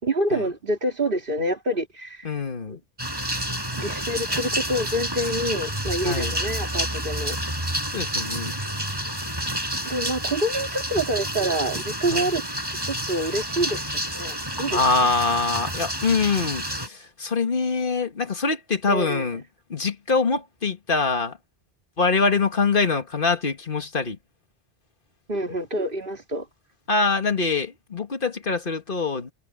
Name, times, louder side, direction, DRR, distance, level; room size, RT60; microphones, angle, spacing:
voice 1, 0.0-2.3 2.7-2.8 3.8-7.4 9.8-12.5 12.8-14.8 18.9-19.3 25.3-26.5, right 1 dB, 60° right, 3.0 m, -27 dB
voice 2, 2.2-2.8 6.0-6.3 7.9-8.6 12.1-12.3 14.7-19.4 19.7-21.4 22.0-24.2 26.9-29.3, left 4 dB, 60° left, 2.1 m, -24 dB
sound 1, 3.0-16.9, equal, 25° right, 6.5 m, -29 dB
omnidirectional pair, 1.0 m